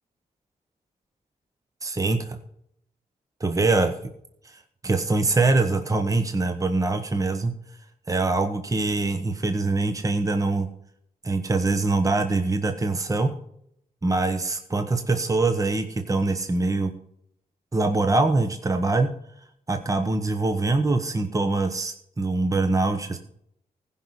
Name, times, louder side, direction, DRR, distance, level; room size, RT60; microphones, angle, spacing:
voice 1, 1.8-2.4 3.4-3.9 4.4-7.5 8.1-10.7 11.2-13.3 14.0-16.9 17.7-19.1 19.7-23.2, right 3 dB, 20° right, 6 dB, 1.1 m, -23 dB
15.0 x 5.6 x 6.4 m, 0.72 s
cardioid pair, 75°, 15 cm